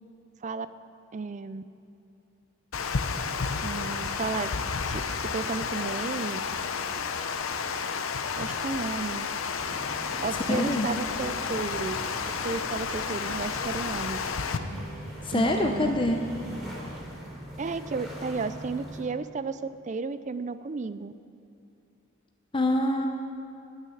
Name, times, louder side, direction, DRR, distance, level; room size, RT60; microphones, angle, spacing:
voice 1, 1.1-1.6 3.6-4.5 4.9-6.4 8.4-9.3 10.2-12.0 12.4-14.2 14.5-14.6 15.3-16.0 17.6-21.1, right 4 dB, 35° right, 13 dB, 0.4 m, -33 dB
Water, 2.7-14.6, left 5 dB, 90° left, 0.7 m, -31 dB
sound 1, 9.5-19.0, equal, ahead, 3.2 m, -42 dB
voice 2, 10.5-10.9 15.2-16.2 22.5-23.1, left 1 dB, 25° left, 3 dB, 0.6 m, -25 dB
sound 2, 11.0-17.0, right 1 dB, 85° right, 2.8 m, -44 dB
12.0 x 9.7 x 7.0 m, 2.8 s
head